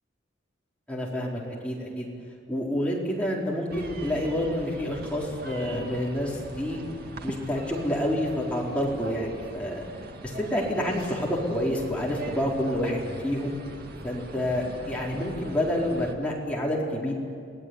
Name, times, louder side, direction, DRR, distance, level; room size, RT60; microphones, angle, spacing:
voice 1, 0.9-2.1 2.5-6.8 7.2-9.9 10.4-13.6 14.0-17.1, left 1 dB, 5° left, -4 dB, 4.7 m, -28 dB
sound 1, 3.7-16.1, right 1 dB, 55° right, 2.2 m, -42 dB
29.5 x 18.0 x 9.8 m, 2.3 s
head